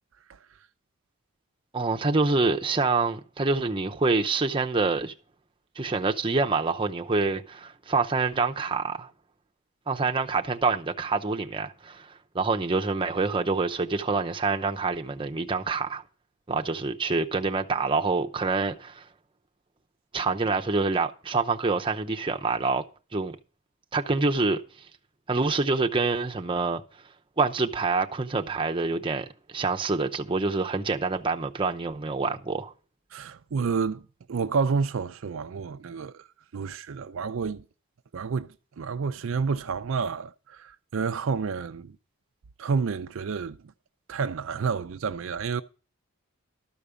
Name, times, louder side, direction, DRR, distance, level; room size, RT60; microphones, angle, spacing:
voice 1, 1.7-5.1 5.8-9.1 9.9-16.0 16.5-19.0 20.1-22.8 23.1-23.4 23.9-24.6 25.3-26.8 27.4-29.3 29.5-32.7, right 3 dB, 25° right, 0.7 m, -26 dB
voice 2, 33.1-36.2 36.5-37.6 38.1-41.9 42.6-43.6 44.1-45.6, right 5 dB, 65° right, 0.4 m, -29 dB
13.0 x 5.0 x 6.9 m
head